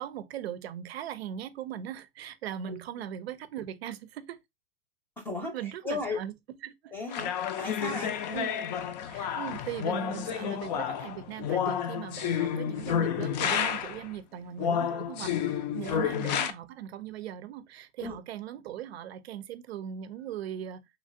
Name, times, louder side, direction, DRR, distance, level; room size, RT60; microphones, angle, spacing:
voice 1, 0.0-4.4 5.5-6.3 6.6-6.9 8.3-8.6 9.1-15.4 15.7-20.9, right 10 dB, 90° right, 0.5 m, -39 dB
voice 2, 2.7-3.1 5.2-6.2 6.9-7.3 7.6-8.4 15.9-16.4 18.0-18.2, left 2 dB, 5° left, 0.6 m, -36 dB
sound 1, 7.1-14.1 14.6-16.5, left 8 dB, 45° left, 0.4 m, -30 dB
3.2 x 2.4 x 2.5 m
hypercardioid pair, 145°, 30 cm